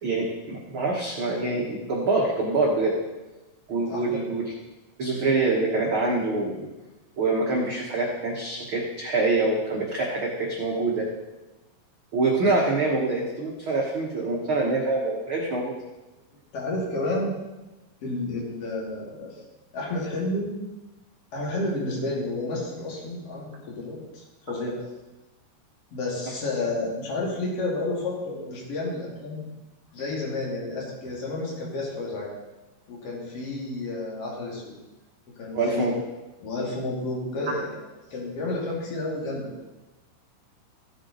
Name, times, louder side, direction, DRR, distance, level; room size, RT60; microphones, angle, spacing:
voice 1, 0.0-2.9 3.7-4.4 5.0-6.6 7.2-11.0 12.1-15.7 35.5-35.9, right 3 dB, 65° right, -4 dB, 1.3 m, -25 dB
voice 2, 3.9-4.2 16.5-17.3 18.0-19.4 19.7-20.5 21.3-24.8 25.9-29.4 29.9-32.3 32.9-34.7 35.4-35.9 36.4-37.7 38.1-39.5, left 2 dB, 45° left, -3 dB, 2.9 m, -31 dB
16.5 x 6.6 x 4.0 m, 1.1 s
omnidirectional pair, 4.5 m